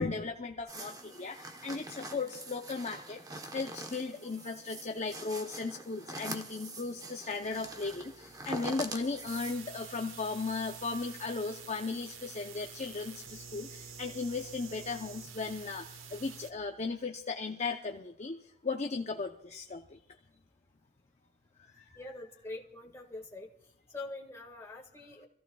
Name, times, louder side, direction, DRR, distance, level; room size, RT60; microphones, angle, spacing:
voice 1, 0.0-20.0 21.8-21.9, left 4 dB, 35° left, 3 dB, 0.7 m, -36 dB
sound 1, 0.7-9.5, right 2 dB, 20° right, 1.1 m, -44 dB
sound 2, 7.4-16.5, right 6 dB, 80° right, 1.2 m, -49 dB
voice 2, 22.0-23.5 23.9-25.3, left 2 dB, 15° left, -1 dB, 1.9 m, -44 dB
26.0 x 15.0 x 2.4 m, 0.71 s
head